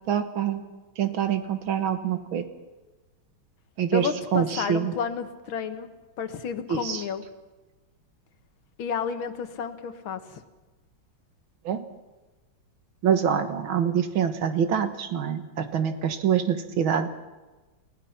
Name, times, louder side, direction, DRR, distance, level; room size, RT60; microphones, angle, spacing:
voice 1, 0.1-0.6 1.0-2.4 3.8-4.9 6.7-7.0 11.7-11.8 13.0-17.1, right 8 dB, 85° right, 8 dB, 2.2 m, -25 dB
voice 2, 3.9-5.9 6.2-7.2 8.8-10.4, left 6 dB, 80° left, 9 dB, 2.1 m, -31 dB
29.0 x 17.0 x 5.8 m, 1.2 s
omnidirectional pair, 2.2 m